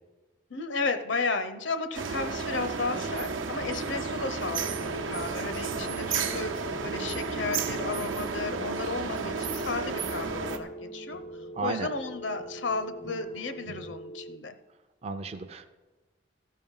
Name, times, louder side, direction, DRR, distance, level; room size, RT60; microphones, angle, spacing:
voice 1, 0.5-11.2 11.6-14.6, left 4 dB, 70° left, 9 dB, 0.8 m, -33 dB
sound 1, 1.9-10.6, right 5 dB, 85° right, 0.8 m, -32 dB
sound 2, 2.5-14.0, right 1 dB, 60° right, 1.0 m, -50 dB
sound 3, 4.4-14.4, right 1 dB, 50° left, 0.4 m, -43 dB
voice 2, 11.5-11.9 15.0-15.7, right 4 dB, 30° right, 7 dB, 0.4 m, -33 dB
15.0 x 5.5 x 5.5 m, 1.2 s
head